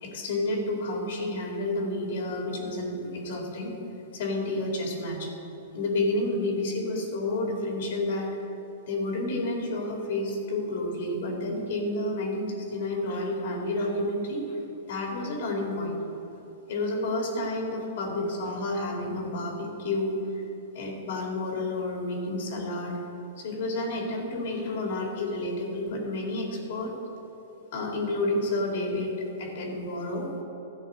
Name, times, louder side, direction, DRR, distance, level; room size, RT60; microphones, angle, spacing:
voice 1, 0.0-3.7 4.1-5.3 5.7-8.3 8.9-14.6 14.9-16.0 16.7-20.4 20.7-23.0 23.4-26.9 27.7-30.3, left 2 dB, 65° left, 0 dB, 2.4 m, -30 dB
12.5 x 5.2 x 8.4 m, 2.9 s
hypercardioid pair, 130°, 0 cm